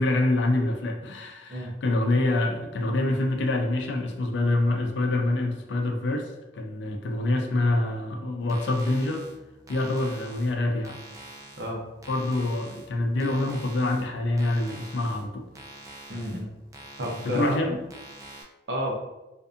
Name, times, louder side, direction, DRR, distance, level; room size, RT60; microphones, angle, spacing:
voice 1, 0.0-9.3 9.7-11.0 12.1-15.5 17.2-17.8, left 2 dB, 75° left, 3 dB, 0.4 m, -26 dB
sound 1, 8.4-18.4, right 1 dB, 20° right, 0.3 m, -46 dB
voice 2, 16.1-16.5 17.0-17.6 18.7-18.9, equal, 70° right, -1 dB, 0.6 m, -30 dB
2.5 x 2.4 x 2.4 m, 1.0 s
head